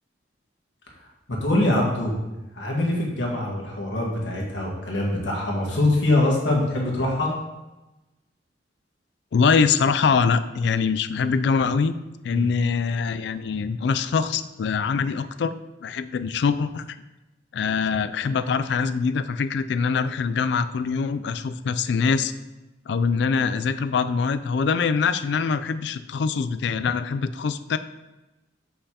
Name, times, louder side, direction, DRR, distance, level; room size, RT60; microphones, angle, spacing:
voice 1, 1.3-2.1 2.5-7.3 12.3-12.5, left 1 dB, 85° left, -2 dB, 1.6 m, -23 dB
voice 2, 9.3-11.9 12.2-15.5 15.8-16.8 17.5-22.3 22.9-27.8, left 5 dB, 65° left, 12 dB, 0.3 m, -23 dB
6.5 x 5.5 x 2.9 m, 1.0 s
head